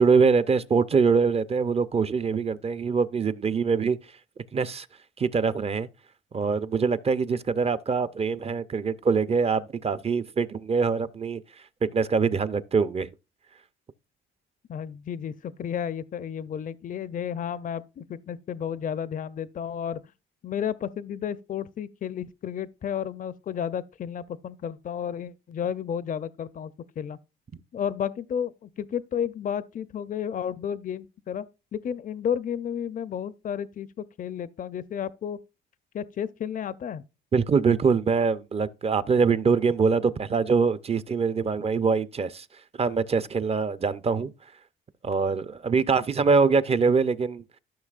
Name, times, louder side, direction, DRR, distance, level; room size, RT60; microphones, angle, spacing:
voice 1, 0.0-4.0 4.5-4.9 5.2-5.9 6.3-11.4 11.8-13.1 37.3-42.5 42.8-44.3 45.0-47.4, right 5 dB, 30° right, 0.6 m, -23 dB
voice 2, 14.7-20.0 20.4-27.2 27.7-31.4 31.7-35.4 35.9-37.0, left 8 dB, 45° left, 0.5 m, -32 dB
13.5 x 5.9 x 2.4 m
cardioid pair, 90°, 20 cm